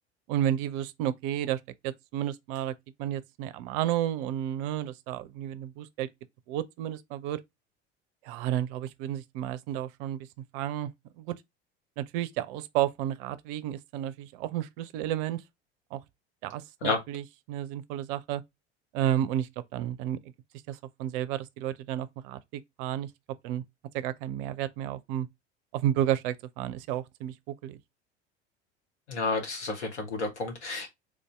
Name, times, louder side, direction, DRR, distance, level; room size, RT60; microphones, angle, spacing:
voice 1, 0.3-2.7 3.0-6.1 6.5-7.4 8.2-10.3 10.5-10.9 11.2-11.3 12.0-15.4 15.9-16.0 16.4-18.4 18.9-20.2 20.7-23.1 23.4-23.6 23.9-25.3 25.7-27.8, right 11 dB, 50° right, 0.5 m, -32 dB
voice 2, 29.1-30.9, left 3 dB, 75° left, 1.2 m, -30 dB
3.5 x 2.6 x 3.3 m
figure-of-eight pair, 70°, 34 cm